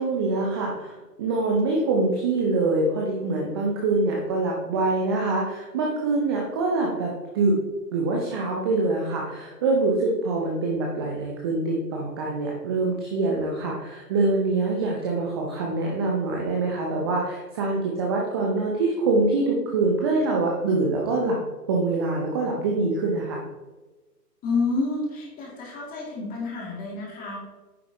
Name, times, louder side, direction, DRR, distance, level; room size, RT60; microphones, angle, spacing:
voice 1, 0.0-7.6 7.9-21.4 21.7-23.4, right 3 dB, 15° right, -1 dB, 0.6 m, -25 dB
voice 2, 24.4-27.4, left 3 dB, 15° left, -3 dB, 2.6 m, -29 dB
9.5 x 7.1 x 3.0 m, 1.2 s
figure-of-eight pair, 130°, 49 cm